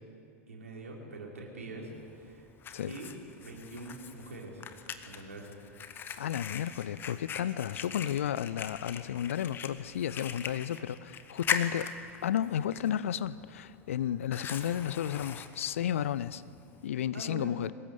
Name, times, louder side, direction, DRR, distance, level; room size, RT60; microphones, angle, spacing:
voice 1, 0.5-2.5 2.9-4.6 5.0-5.5 17.1-17.6, right 2 dB, 70° right, 4.7 m, -44 dB
Fire, 1.9-16.9, left 7 dB, 25° left, 1.5 m, -41 dB
voice 2, 6.2-11.9 12.2-16.4 16.8-17.7, left 10 dB, 65° left, 0.7 m, -32 dB
23.0 x 20.0 x 8.3 m
figure-of-eight pair, 85°, 8 cm